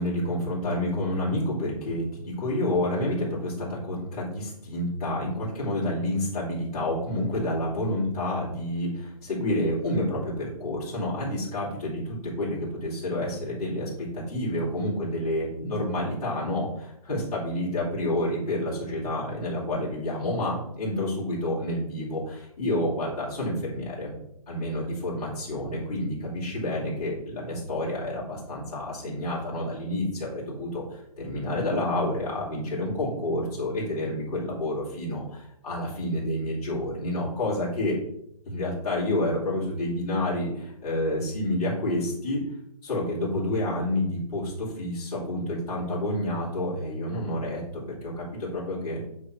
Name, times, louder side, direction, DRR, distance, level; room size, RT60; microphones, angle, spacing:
voice 1, 0.0-24.1 24.5-38.0 38.4-42.4 42.8-47.6 47.9-49.0, left 1 dB, 15° left, -11 dB, 2.7 m, -29 dB
8.9 x 3.7 x 4.6 m, 0.76 s
hypercardioid pair, 180°, 20 cm